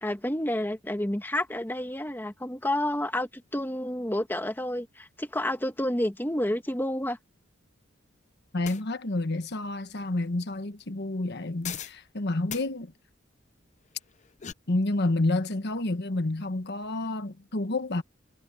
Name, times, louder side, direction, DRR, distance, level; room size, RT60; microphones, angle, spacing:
voice 1, 0.0-7.2, left 1 dB, 10° left, 1.4 m, -30 dB
voice 2, 8.5-12.9 14.7-18.0, left 2 dB, 60° left, 1.3 m, -29 dB
sound 1, 8.6-8.8 11.6-12.0 12.5-12.7 14.1-14.5, left 9 dB, 40° left, 0.6 m, -38 dB
head